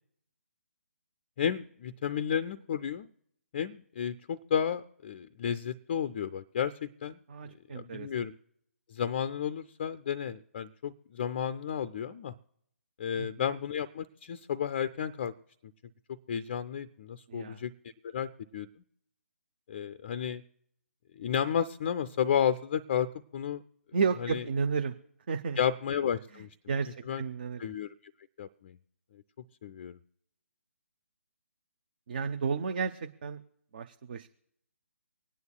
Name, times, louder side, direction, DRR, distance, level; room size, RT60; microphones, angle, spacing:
voice 1, 1.4-3.1 3.5-7.2 7.7-8.3 8.9-12.3 13.0-15.3 16.3-17.7 18.0-18.7 19.7-20.4 21.2-23.6 24.2-24.4 25.6-26.5 27.1-27.2 27.6-27.9 28.4-28.8 29.6-30.0, left 8 dB, 30° left, 11 dB, 0.4 m, -32 dB
voice 2, 7.3-8.1 13.1-13.3 17.3-17.6 23.9-25.0 25.3-25.6 26.7-27.7 32.1-33.4 33.7-34.3, right 5 dB, 40° right, 9 dB, 0.5 m, -32 dB
24.5 x 9.4 x 2.3 m, 0.71 s
figure-of-eight pair, 140°, 8 cm